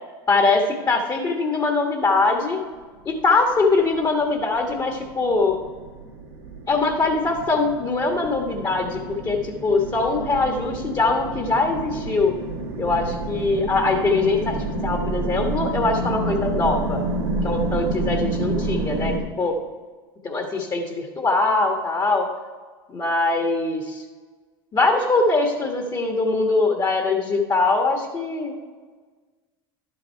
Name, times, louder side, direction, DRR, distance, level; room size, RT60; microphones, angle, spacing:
voice 1, 0.3-2.6 3.0-5.6 6.7-12.3 12.8-14.6 14.8-17.0 17.4-19.5 20.2-22.3 22.9-24.0 24.7-28.5, left 3 dB, 30° left, 3 dB, 1.5 m, -22 dB
sound 1, 3.8-19.2, right 2 dB, 80° right, 1.7 m, -29 dB
11.5 x 7.7 x 4.6 m, 1.4 s
hypercardioid pair, 80°, 13 cm